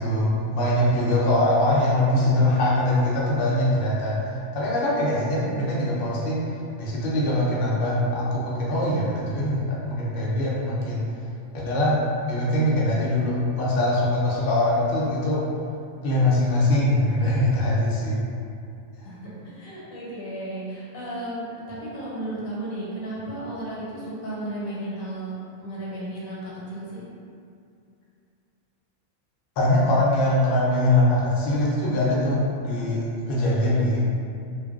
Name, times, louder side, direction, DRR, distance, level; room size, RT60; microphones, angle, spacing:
voice 1, 0.0-6.4 6.8-11.0 11.5-12.0 12.2-15.4 16.0-18.2 29.6-34.0, left 1 dB, 60° left, -6 dB, 0.6 m, -22 dB
voice 2, 19.0-25.3 25.6-27.0, right 1 dB, 90° left, -7 dB, 1.1 m, -34 dB
2.5 x 2.2 x 2.3 m, 2.5 s
omnidirectional pair, 1.4 m